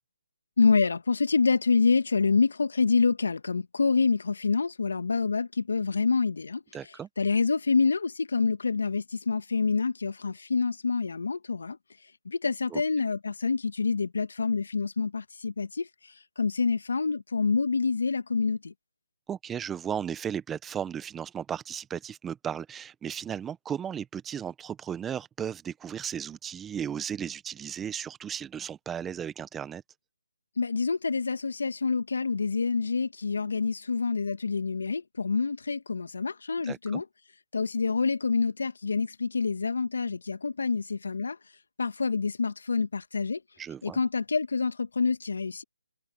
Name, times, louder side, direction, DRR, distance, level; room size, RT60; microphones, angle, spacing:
voice 1, 0.6-6.6 7.2-11.8 12.3-15.9 16.4-18.7 30.6-37.0 37.5-41.4 41.8-43.4 43.8-45.6, left 4 dB, 70° left, 1.7 m, -27 dB
voice 2, 6.7-7.1 12.7-12.8 19.3-29.8 36.6-37.0 43.6-44.0, right 8 dB, 10° right, 1.1 m, -35 dB
figure-of-eight pair, 155°, 0 cm